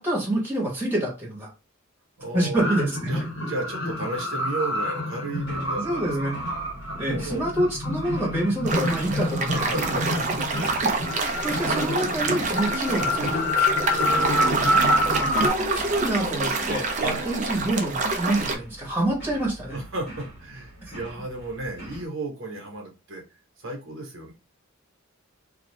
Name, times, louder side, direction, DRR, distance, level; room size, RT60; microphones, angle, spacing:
voice 1, 0.0-1.5 2.3-3.3 5.8-6.3 7.0-9.5 9.8-10.0 11.2-13.7 15.2-19.8 20.9-21.0, right 1 dB, 10° right, -3 dB, 1.2 m, -27 dB
voice 2, 2.2-2.6 3.1-6.3 6.9-7.4 9.2-10.7 12.5-12.6 13.9-14.9 16.9-17.4 19.7-23.2 23.6-24.3, right 2 dB, 75° right, 1 dB, 1.0 m, -34 dB
sound 1, 2.5-15.5, left 1 dB, 70° left, 1.3 m, -27 dB
sound 2, 5.3-22.1, right 1 dB, 50° left, 1.2 m, -43 dB
sound 3, 8.7-18.6, right 3 dB, 35° right, 0.4 m, -27 dB
2.5 x 2.4 x 3.1 m, 0.29 s
head